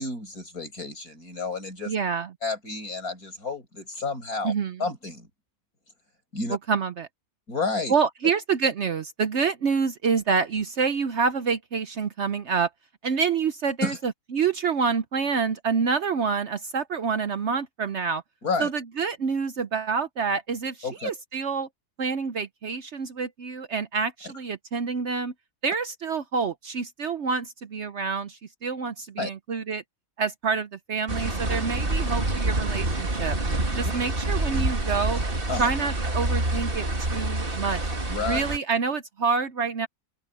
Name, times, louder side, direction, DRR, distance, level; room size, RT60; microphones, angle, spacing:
voice 1, 0.0-2.0 2.4-4.5 4.8-5.3 6.3-6.6 7.5-7.9 13.8-14.0 18.4-18.7 20.8-21.1 29.2-29.3 33.7-33.9 35.5-35.7 38.1-38.4, left 3 dB, 70° left, 6.9 m, -30 dB
voice 2, 1.9-2.3 4.4-4.9 6.5-7.1 7.9-12.7 13.0-18.2 18.6-21.7 22.0-25.3 25.6-29.8 30.2-33.4 33.7-35.2 35.6-37.8 38.2-39.9, right 5 dB, 55° right, 0.9 m, -27 dB
sound 1, 31.1-38.6, right 2 dB, 35° right, 2.6 m, -27 dB
open air
omnidirectional pair, 1.6 m